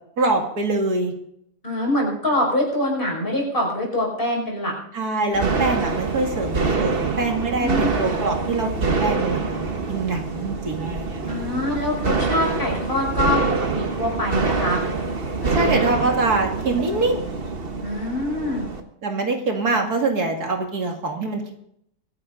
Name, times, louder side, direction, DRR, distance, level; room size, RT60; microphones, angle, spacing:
voice 1, 0.2-1.1 4.9-11.3 15.5-17.2 19.0-21.5, right 3 dB, 75° right, 2 dB, 2.7 m, -24 dB
voice 2, 1.6-4.8 7.6-7.9 11.3-14.8 15.3-16.0 17.8-18.7, left 1 dB, 35° left, -1 dB, 5.7 m, -24 dB
sound 1, 5.3-18.8, right 4 dB, 40° right, 1.5 m, -25 dB
23.5 x 10.5 x 3.9 m, 0.72 s
omnidirectional pair, 1.7 m